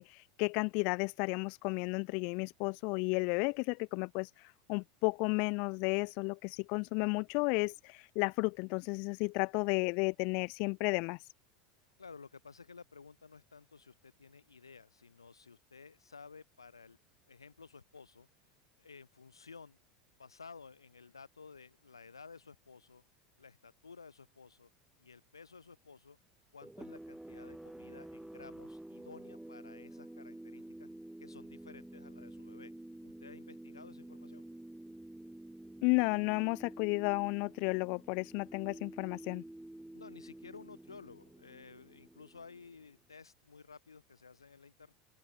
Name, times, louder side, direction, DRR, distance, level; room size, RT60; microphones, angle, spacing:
voice 1, 0.0-11.3 35.8-39.4, left 33 dB, 55° left, 0.5 m, -33 dB
voice 2, 12.0-17.0 17.3-18.3 18.8-19.8 20.2-23.0 23.4-24.7 25.0-26.2 26.5-30.9 31.2-32.7 33.0-34.4 39.9-44.9, left 5 dB, 90° left, 6.0 m, -54 dB
sound 1, 26.6-42.9, right 1 dB, 5° right, 3.2 m, -50 dB
open air
hypercardioid pair, 80°, 2 cm